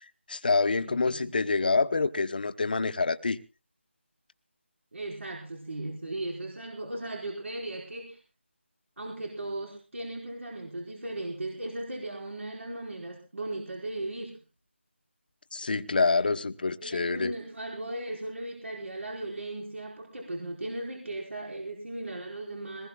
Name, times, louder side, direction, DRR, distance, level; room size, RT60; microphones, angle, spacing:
voice 1, 0.3-3.4 15.5-17.3, left 4 dB, 45° left, 1.0 m, -26 dB
voice 2, 0.8-1.3 4.9-8.2 9.0-14.3 16.8-22.9, right 1 dB, 70° right, 4.6 m, -37 dB
21.5 x 19.5 x 2.3 m
figure-of-eight pair, 175°, 7 cm